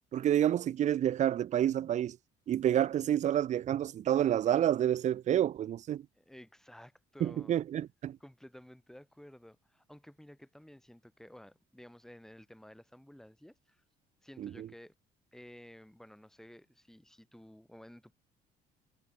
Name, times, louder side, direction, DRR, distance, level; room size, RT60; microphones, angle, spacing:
voice 1, 0.1-2.2 2.5-6.0 7.2-8.2 14.4-14.7, right 11 dB, 45° right, 0.5 m, -29 dB
voice 2, 6.2-7.5 8.2-13.8 14.2-14.9 15.3-18.1, equal, 5° left, 5.5 m, -54 dB
cardioid pair, 110°, 17 cm